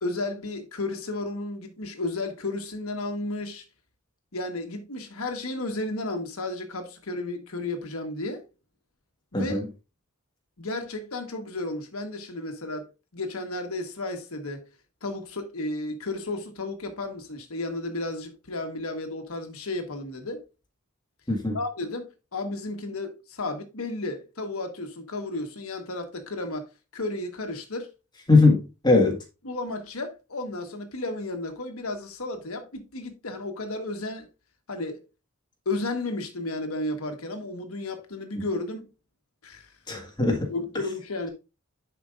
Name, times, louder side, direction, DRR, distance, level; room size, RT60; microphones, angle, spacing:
voice 1, 0.0-3.6 4.3-8.4 9.3-9.6 10.6-14.7 15.0-20.4 21.5-26.6 26.9-27.9 29.4-34.3 34.7-35.0 35.6-38.9 39.4-39.7 40.5-41.3, left 2 dB, 75° left, 1.3 m, -33 dB
voice 2, 9.3-9.6 21.3-21.6 28.3-29.2 39.9-40.5, left 3 dB, 20° left, 1.6 m, -20 dB
10.5 x 5.0 x 2.5 m
head